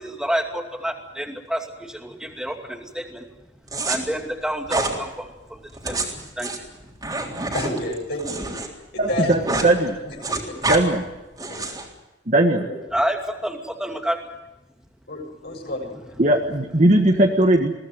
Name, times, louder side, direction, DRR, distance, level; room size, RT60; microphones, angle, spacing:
voice 1, 0.0-3.2 3.9-6.6 12.9-14.2, equal, 5° right, 4 dB, 2.5 m, -29 dB
sound 1, 3.7-4.0 4.7-5.0 5.7-8.7 9.0-9.7 10.0-10.8 11.4-11.9, right 2 dB, 20° right, 3.7 m, -27 dB
voice 2, 7.5-8.5 8.9-10.6 11.5-11.6 12.6-12.8 15.1-16.2, left 1 dB, 60° left, 0 dB, 7.5 m, -31 dB
voice 3, 9.0-10.0 10.6-11.0 12.3-12.6 16.2-17.7, right 1 dB, 45° right, 3 dB, 1.7 m, -18 dB
22.0 x 18.0 x 9.2 m, 1.0 s
head